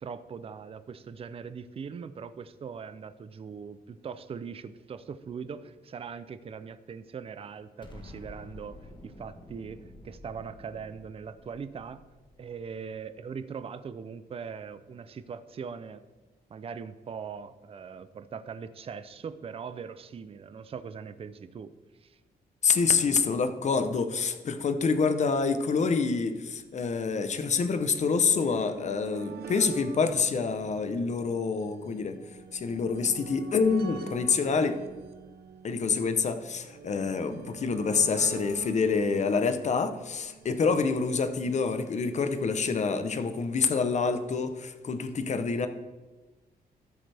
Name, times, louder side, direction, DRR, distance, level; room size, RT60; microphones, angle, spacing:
voice 1, 0.0-8.8 9.0-12.0 12.4-16.0 16.5-21.7 22.0-22.2, right 6 dB, 35° right, 12 dB, 0.5 m, -41 dB
Explosion, 7.8-13.0, left 2 dB, 30° left, 1.3 m, -49 dB
voice 2, 22.6-32.2 32.5-34.8 35.6-45.7, left 5 dB, 45° left, 10 dB, 0.8 m, -27 dB
sound 1, 25.1-25.2 25.3-25.4 26.3-41.5 42.5-42.6 42.8-42.9, right 6 dB, 85° right, 0.8 m, -46 dB
13.0 x 7.7 x 3.4 m, 1.2 s
wide cardioid pair, 140°, 16 cm